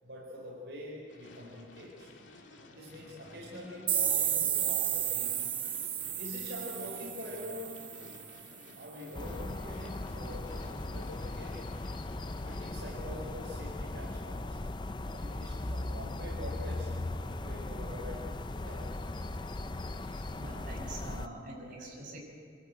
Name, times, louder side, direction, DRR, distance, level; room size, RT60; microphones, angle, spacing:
voice 1, 0.0-2.1 2.7-5.4 6.2-7.8 8.7-11.9 12.4-14.6 15.1-16.9 17.2-19.0, left 1 dB, 70° right, -3 dB, 4.5 m, -45 dB
sound 1, 1.1-12.7, left 2 dB, 80° left, 2.2 m, -54 dB
sound 2, 3.9-8.5, right 10 dB, 25° right, 0.7 m, -32 dB
sound 3, 9.1-21.3, left 2 dB, 25° left, 0.5 m, -38 dB
voice 2, 20.0-22.2, right 1 dB, 45° right, -2 dB, 6.5 m, -45 dB
25.5 x 13.5 x 9.0 m, 2.3 s
head